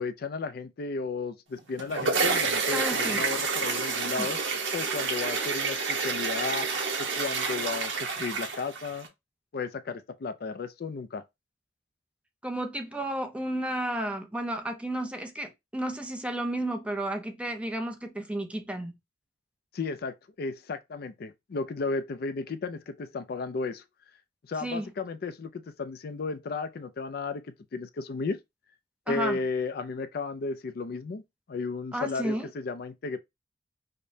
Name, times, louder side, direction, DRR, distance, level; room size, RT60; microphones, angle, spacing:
voice 1, 0.0-4.4 4.7-9.1 9.5-11.2 19.7-23.8 24.4-27.4 27.7-28.4 29.1-31.2 31.5-33.2, left 4 dB, 55° left, 0.4 m, -34 dB
sound 1, 1.6-9.1, right 4 dB, 80° right, 0.9 m, -29 dB
voice 2, 2.7-3.2 4.1-4.3 12.4-18.9 24.6-24.9 29.1-29.4 31.9-32.5, right 1 dB, 5° right, 0.5 m, -32 dB
5.0 x 2.1 x 2.7 m
head